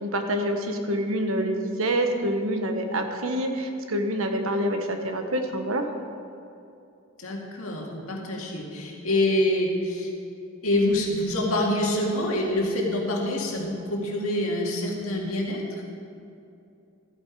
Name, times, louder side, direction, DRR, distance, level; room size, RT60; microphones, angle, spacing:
voice 1, 0.0-5.9, right 1 dB, 75° right, 5 dB, 1.1 m, -26 dB
voice 2, 7.2-10.1 10.6-15.6, left 1 dB, 85° left, -1 dB, 2.1 m, -26 dB
13.5 x 9.1 x 4.7 m, 2.7 s
head